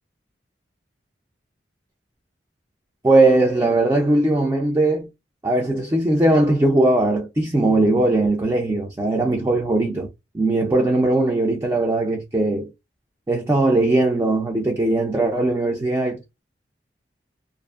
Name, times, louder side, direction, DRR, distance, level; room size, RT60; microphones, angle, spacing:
voice 1, 3.0-5.1 5.4-10.1 10.3-12.7 13.3-16.4, right 2 dB, 15° right, 0.4 m, -19 dB
2.6 x 2.4 x 2.3 m
head